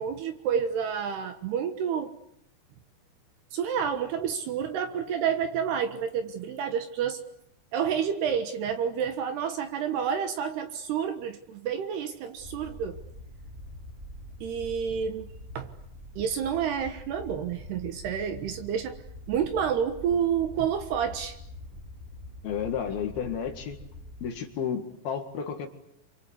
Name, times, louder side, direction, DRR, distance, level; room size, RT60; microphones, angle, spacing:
voice 1, 0.0-2.1 3.5-7.2 7.7-13.0 14.4-15.7 16.2-19.0 19.3-21.4, right 7 dB, 65° right, 8 dB, 3.1 m, -29 dB
sound 1, 12.4-24.3, left 1 dB, 15° right, 3.5 m, -45 dB
voice 2, 22.4-23.8 24.2-25.7, left 7 dB, 55° left, 6 dB, 3.4 m, -32 dB
27.5 x 26.0 x 8.2 m, 0.73 s
omnidirectional pair, 5.7 m